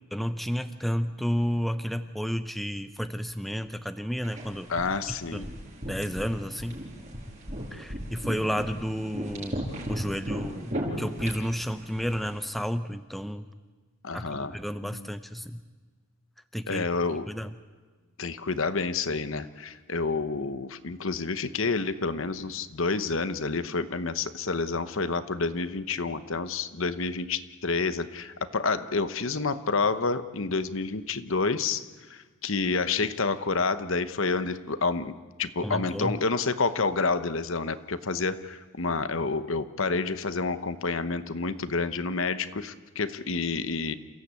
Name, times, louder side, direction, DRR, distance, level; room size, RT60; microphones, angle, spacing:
voice 1, 0.1-4.7 5.3-5.5 5.9-6.9 7.7-9.6 9.9-13.5 14.1-15.6 16.5-16.8 17.3-17.5 35.6-36.2, equal, ahead, 9 dB, 0.7 m, -31 dB
sound 1, 4.2-12.4, equal, 35° right, 5.5 m, -37 dB
voice 2, 4.7-5.5 14.0-14.5 14.8-15.1 16.7-17.2 18.2-31.8 32.1-43.9, left 4 dB, 60° left, 12 dB, 1.0 m, -29 dB
28.5 x 15.5 x 8.3 m, 1.4 s
head